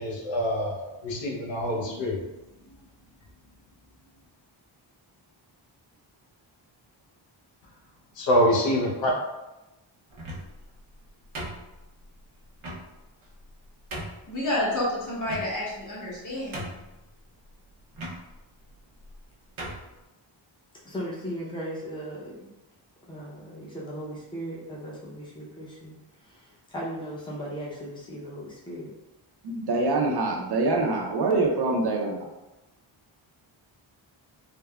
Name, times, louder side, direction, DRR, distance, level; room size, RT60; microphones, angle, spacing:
voice 1, 0.0-2.3 8.2-9.2, equal, 70° left, -2 dB, 0.7 m, -25 dB
sound 1, 10.1-10.6 11.4-12.0 12.6-12.8 13.4-13.5 13.9-14.3 15.2-15.8 16.2-16.3 16.5-17.0 17.9-18.2 19.0-19.2 19.6-19.9, right 1 dB, 90° right, 0.7 m, -37 dB
voice 2, 14.3-16.7, left 1 dB, 40° left, -5 dB, 0.9 m, -29 dB
voice 3, 20.8-22.5 23.1-26.0 26.2-28.9, equal, 10° left, -5 dB, 0.6 m, -37 dB
voice 4, 29.4-32.3, right 3 dB, 55° right, 0 dB, 0.5 m, -25 dB
3.4 x 2.0 x 2.2 m, 0.99 s
wide cardioid pair, 135°, 47 cm